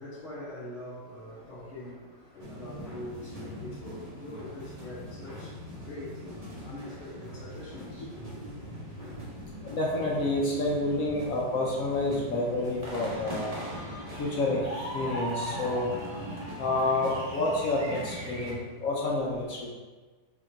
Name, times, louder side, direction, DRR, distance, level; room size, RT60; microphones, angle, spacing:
voice 1, 0.0-9.2 9.5-9.7, left 1 dB, 45° left, -11 dB, 1.4 m, -44 dB
sound 1, 2.4-18.5, equal, 30° right, 0.7 m, -40 dB
voice 2, 9.6-13.5 14.1-15.9 16.6-19.7, left 2 dB, 65° left, -2 dB, 0.9 m, -29 dB
3.7 x 3.5 x 3.9 m, 1.3 s
omnidirectional pair, 1.9 m